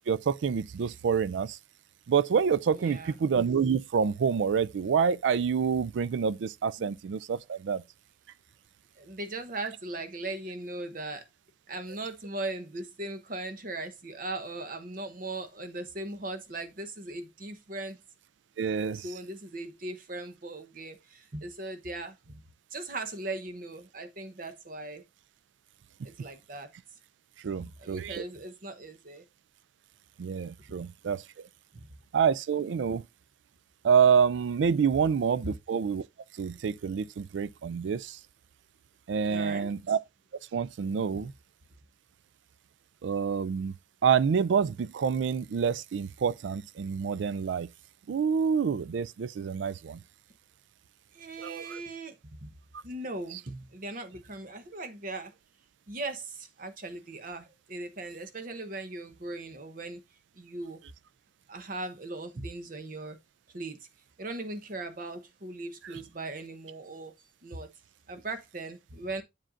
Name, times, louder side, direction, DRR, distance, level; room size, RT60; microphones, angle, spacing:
voice 1, 0.1-1.6 2.1-7.8 18.6-19.0 27.4-28.2 30.2-31.2 32.1-33.0 33.8-36.0 36.4-38.2 39.1-40.0 40.5-41.3 43.0-43.7 44.0-47.7 48.1-50.0 51.4-51.8 53.3-53.4, right 6 dB, 85° right, 0.4 m, -27 dB
voice 2, 2.7-3.2 6.8-6.9 9.0-11.3 11.7-18.0 18.9-22.4 22.7-25.0 26.0-26.7 27.6-29.2 30.7-30.8 31.7-31.9 35.4-35.5 39.3-39.7 41.1-41.2 51.1-52.5 52.8-55.3 55.9-60.0 60.4-60.8 61.5-63.2 63.5-63.9 64.2-67.1 67.4-67.7 68.1-69.2, right 2 dB, 50° right, 0.9 m, -39 dB
7.6 x 7.5 x 2.5 m
head